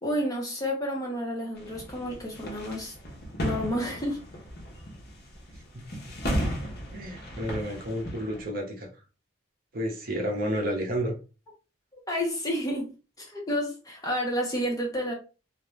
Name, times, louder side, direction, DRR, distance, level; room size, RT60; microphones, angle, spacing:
voice 1, 0.0-2.9 3.4-4.2 12.1-12.9 13.2-15.1, equal, 15° left, 0.6 m, -30 dB
sound 1, 1.5-8.5, equal, 50° left, 0.8 m, -35 dB
voice 2, 6.9-8.9 9.7-11.1, equal, 45° right, 0.7 m, -31 dB
2.4 x 2.2 x 3.1 m
head